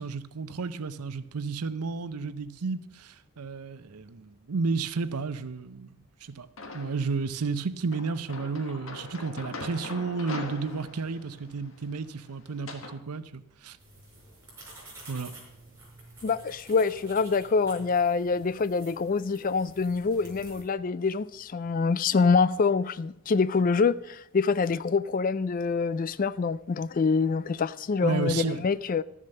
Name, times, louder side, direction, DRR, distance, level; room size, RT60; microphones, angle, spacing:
voice 1, 0.0-5.9 6.2-6.5 6.7-13.8 15.1-15.3 28.0-28.6, right 4 dB, 90° right, 0.7 m, -32 dB
hat extra break, 6.6-7.2 7.9-13.0, left 3 dB, 60° left, 1.3 m, -42 dB
sound 1, 13.8-20.6, right 2 dB, 10° right, 5.1 m, -50 dB
voice 2, 16.2-29.0, left 4 dB, 40° left, 0.3 m, -25 dB
13.0 x 7.4 x 6.6 m
head